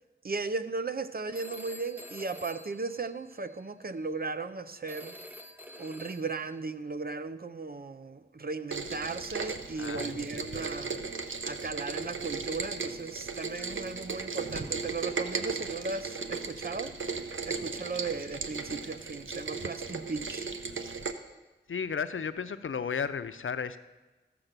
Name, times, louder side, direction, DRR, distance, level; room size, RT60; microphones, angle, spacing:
voice 1, 0.2-5.2 5.8-11.0 11.4-16.9 17.5-20.5, right 3 dB, 50° right, 12 dB, 0.6 m, -36 dB
Telephone, 1.3-3.7 4.9-6.6, equal, 10° right, 0.9 m, -48 dB
Rain, 8.7-21.1, right 4 dB, 90° right, 0.8 m, -36 dB
voice 2, 9.8-10.6 21.7-23.8, left 6 dB, 85° left, 12 dB, 0.5 m, -34 dB
14.0 x 5.9 x 6.7 m, 1.2 s
wide cardioid pair, 60°, 20 cm